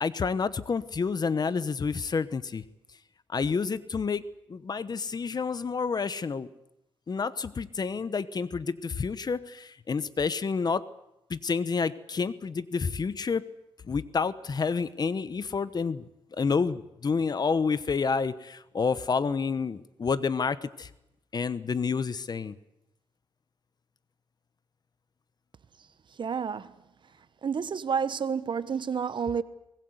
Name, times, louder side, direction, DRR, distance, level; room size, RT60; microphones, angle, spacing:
voice 1, 0.0-2.6 3.3-4.2 4.5-6.5 7.1-10.8 11.3-13.4 13.9-16.1 16.4-20.9 21.3-22.6, left 5 dB, 45° left, 1.0 m, -29 dB
voice 2, 26.2-26.7 27.4-29.4, right 6 dB, 55° right, 1.1 m, -29 dB
24.0 x 20.0 x 8.0 m
cardioid pair, 90°, 10 cm